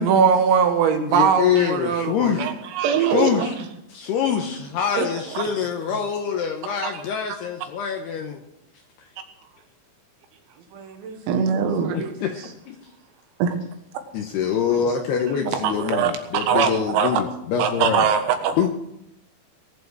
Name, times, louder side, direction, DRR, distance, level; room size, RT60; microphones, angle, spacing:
voice 1, 0.0-2.4 4.9-5.1 10.7-12.1, right 6 dB, 70° right, 6 dB, 3.5 m, -21 dB
voice 2, 1.1-2.5 3.1-3.6 3.9-8.4 11.9-12.8 14.1-18.1 18.6-18.7, left 8 dB, 75° left, 3 dB, 2.5 m, -25 dB
voice 3, 2.4-3.5 5.4-5.5 6.8-6.9 11.3-12.0 13.4-13.5 15.6-17.2 17.6-18.6, right 7 dB, 85° right, 6 dB, 4.3 m, -22 dB
20.0 x 7.7 x 6.5 m, 0.79 s
omnidirectional pair, 5.9 m